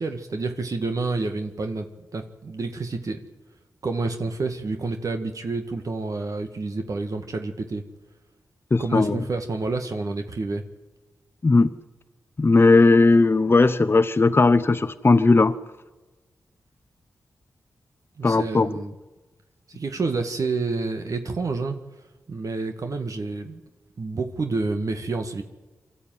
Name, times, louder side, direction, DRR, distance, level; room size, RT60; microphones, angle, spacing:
voice 1, 0.0-1.9 2.1-3.2 3.8-7.8 8.8-10.6 18.2-19.0 19.7-21.8 22.3-23.6 24.0-25.4, right 3 dB, 60° right, 5 dB, 1.8 m, -28 dB
voice 2, 8.7-9.2 11.4-11.7 12.4-15.6 18.2-18.7, left 3 dB, 35° left, 10 dB, 0.9 m, -17 dB
23.5 x 13.0 x 9.3 m, 1.2 s
cardioid pair, 50°, 6 cm